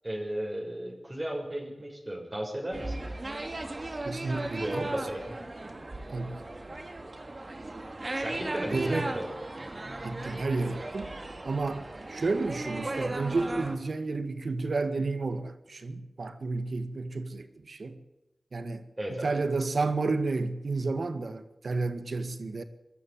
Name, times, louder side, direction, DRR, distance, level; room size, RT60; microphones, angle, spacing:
voice 1, 0.0-3.1 4.5-5.4 8.1-9.3 19.0-19.3, right 1 dB, 30° right, -1 dB, 7.0 m, -35 dB
sound 1, 2.7-13.8, right 2 dB, 45° right, 3.1 m, -37 dB
voice 2, 4.0-4.9 6.1-6.4 8.7-9.1 10.0-11.1 11.4-18.0 18.5-18.8 19.2-22.6, right 3 dB, 80° right, 10 dB, 1.8 m, -31 dB
22.0 x 13.5 x 9.1 m, 0.97 s
wide cardioid pair, 55°, 0 cm